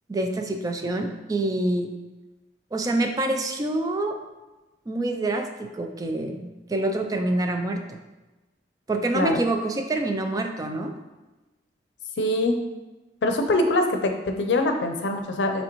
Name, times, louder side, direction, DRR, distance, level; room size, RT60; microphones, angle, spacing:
voice 1, 0.1-1.9 2.7-4.2 4.9-8.0 8.9-10.9, right 2 dB, 20° right, 5 dB, 0.3 m, -26 dB
voice 2, 12.2-12.5 13.2-15.6, left 2 dB, 85° left, 5 dB, 0.5 m, -23 dB
5.1 x 3.3 x 2.9 m, 1.1 s
head